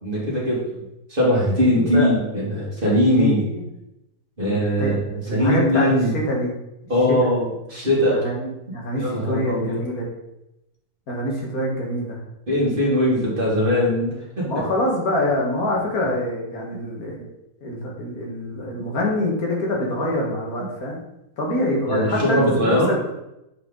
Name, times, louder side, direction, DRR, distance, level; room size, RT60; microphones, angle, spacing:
voice 1, 0.0-0.6 1.1-3.4 4.4-6.1 6.9-8.2 9.0-9.8 12.5-14.5 21.9-23.0, equal, 35° right, -6 dB, 2.4 m, -20 dB
voice 2, 1.8-2.2 3.1-3.6 4.8-5.0 5.3-6.5 7.2-7.3 8.2-10.1 11.1-12.2 14.4-17.3 17.6-21.0 21.4-23.1, left 1 dB, 75° left, -2 dB, 2.0 m, -25 dB
7.7 x 4.5 x 3.8 m, 0.89 s
omnidirectional pair, 1.6 m